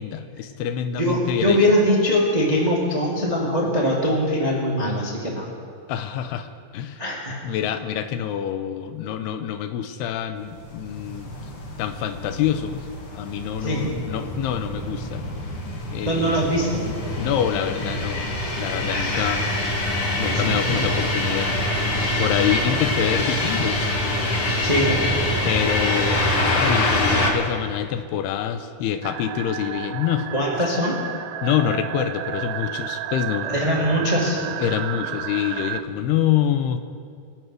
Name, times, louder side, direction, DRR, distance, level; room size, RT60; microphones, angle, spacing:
voice 1, 0.0-1.6 5.9-7.0 7.4-11.3 11.8-12.9 13.1-15.2 15.9-16.4 17.2-19.5 20.2-21.6 22.2-24.0 25.4-30.3 31.4-33.7 34.6-36.8, left 10 dB, 85° left, 9 dB, 2.7 m, -26 dB
voice 2, 1.0-5.5 7.0-7.5 13.6-14.0 16.0-16.9 18.9-21.1 24.6-25.4 30.3-31.0 33.4-34.6, equal, 20° right, -3 dB, 1.0 m, -23 dB
sound 1, 10.5-27.3, left 1 dB, 50° left, 1.8 m, -25 dB
sound 2, 29.0-35.8, right 12 dB, 85° right, 2.7 m, -32 dB
23.5 x 8.2 x 6.2 m, 2.3 s
omnidirectional pair, 4.6 m